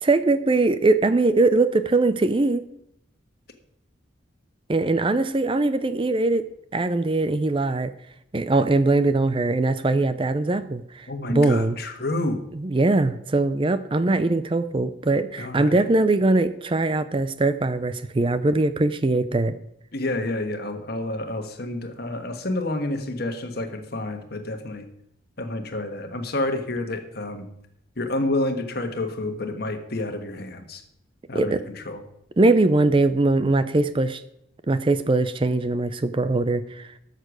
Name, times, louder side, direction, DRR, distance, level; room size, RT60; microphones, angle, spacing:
voice 1, 0.0-2.6 4.7-6.4 6.7-7.9 8.3-11.8 12.5-19.6 31.3-31.6 32.4-34.2 34.7-36.9, right 2 dB, 25° right, 13 dB, 0.5 m, -21 dB
voice 2, 11.1-12.4 15.4-15.8 19.9-24.9 25.4-27.5 28.0-30.8 31.3-32.0, left 2 dB, 55° left, 7 dB, 1.4 m, -29 dB
13.0 x 6.7 x 6.2 m, 0.77 s
head